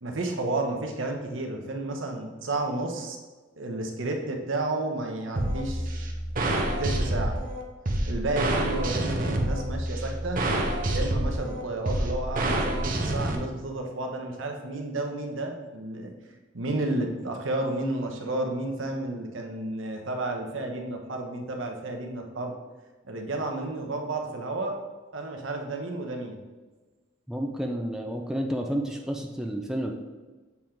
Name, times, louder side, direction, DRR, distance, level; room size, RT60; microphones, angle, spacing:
voice 1, 0.0-3.2 3.6-6.0 6.6-7.4 8.1-10.5 10.9-16.1 16.5-22.5 23.0-24.8 25.1-26.4, right 2 dB, 75° right, 3 dB, 1.0 m, -31 dB
sound 1, 5.4-13.3, right 1 dB, 45° right, 0.8 m, -28 dB
voice 2, 27.3-29.9, equal, 5° right, 2 dB, 0.4 m, -30 dB
7.2 x 3.7 x 4.5 m, 1.3 s
head